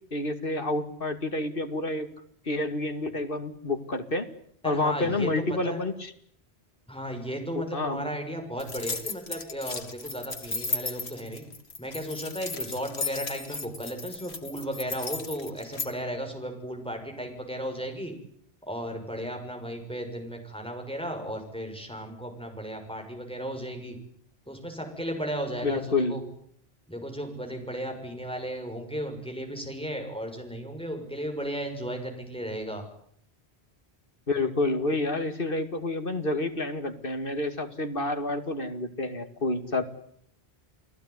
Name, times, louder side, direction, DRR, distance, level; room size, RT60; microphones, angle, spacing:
voice 1, 0.1-2.1 2.5-4.3 4.6-6.1 7.5-8.1 25.6-26.2 34.3-39.8, left 2 dB, 60° left, 7 dB, 2.5 m, -29 dB
voice 2, 4.6-5.8 6.9-11.4 11.8-18.1 18.7-24.0 24.5-26.2 26.9-32.8, equal, 5° left, 3 dB, 6.4 m, -35 dB
sound 1, 8.6-15.9, left 4 dB, 85° left, 2.4 m, -35 dB
30.0 x 18.5 x 9.8 m, 0.67 s
omnidirectional pair, 1.1 m